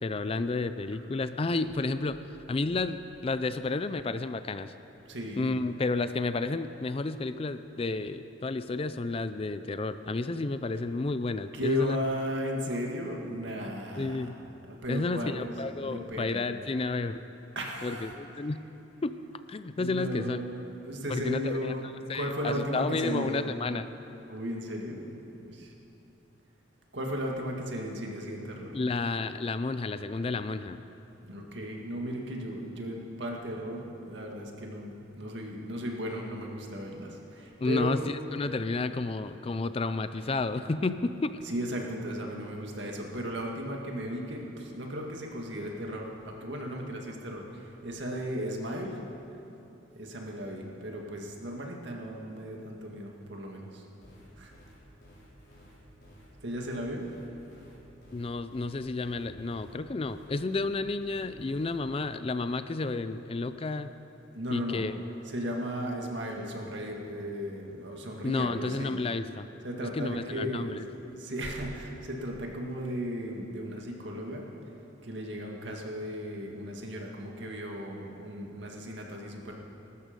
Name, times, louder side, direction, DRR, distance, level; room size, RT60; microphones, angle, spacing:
voice 1, 0.0-2.2 2.5-4.7 5.4-12.0 14.0-14.4 14.9-17.2 17.8-18.6 19.0-19.1 19.5-20.4 21.1-21.8 22.1-23.9 28.7-30.8 37.6-41.3 58.1-63.9 64.5-65.0 68.2-69.5 69.8-70.8, left 3 dB, 30° left, 11 dB, 0.4 m, -31 dB
voice 2, 5.1-5.5 11.5-14.3 14.6-15.5 15.8-16.5 17.6-18.2 19.8-23.4 24.3-25.1 25.3-25.7 26.9-28.8 31.2-38.0 40.2-40.3 41.4-49.0 49.9-53.8 54.4-54.5 56.4-57.1 64.3-64.8 65.3-69.0 69.6-74.5 75.0-79.6, equal, 60° right, 0 dB, 2.1 m, -35 dB
sound 1, 54.0-61.8, equal, 50° left, 4.5 m, -54 dB
21.0 x 12.5 x 5.3 m, 3.0 s
head